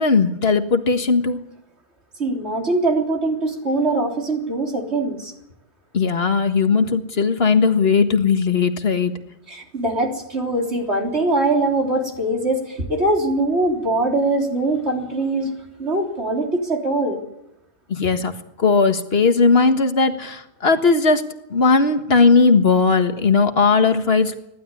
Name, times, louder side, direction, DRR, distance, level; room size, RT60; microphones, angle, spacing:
voice 1, 0.0-1.4 5.9-9.2 17.9-18.3 18.6-21.2 21.5-24.3, left 4 dB, 65° left, 8 dB, 1.8 m, -17 dB
voice 2, 2.2-5.3 9.5-15.5 15.8-17.2, right 2 dB, 75° right, 1 dB, 4.0 m, -22 dB
29.5 x 12.0 x 9.8 m, 0.88 s
omnidirectional pair, 1.1 m